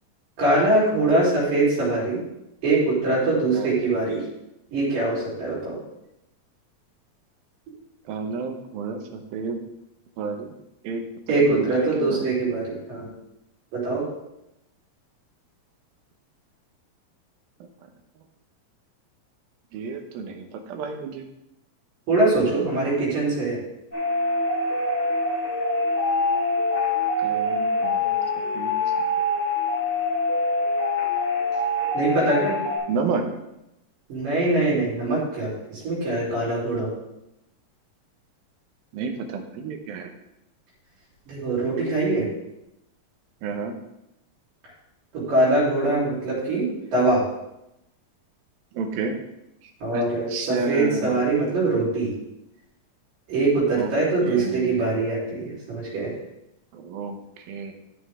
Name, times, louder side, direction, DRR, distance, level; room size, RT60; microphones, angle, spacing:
voice 1, 0.4-2.2 2.6-4.2 4.7-5.8 11.3-13.1 13.7-14.0 22.1-23.6 31.9-32.6 34.1-36.9 41.3-42.3 45.1-46.7 46.9-47.2 49.8-52.1 53.3-56.1, right 2 dB, 70° right, -6 dB, 5.3 m, -23 dB
voice 2, 8.1-9.6 10.2-10.5 10.8-12.2 19.7-21.3 27.2-28.2 28.5-28.7 32.9-33.3 38.9-40.1 43.4-43.8 48.7-49.2 49.6-51.2 53.7-53.9 54.2-54.8 56.7-57.7, right 5 dB, 90° right, 5 dB, 2.9 m, -31 dB
sound 1, 23.9-32.8, left 2 dB, 20° left, 3.9 m, -24 dB
13.5 x 6.6 x 3.6 m, 0.88 s
omnidirectional pair, 4.1 m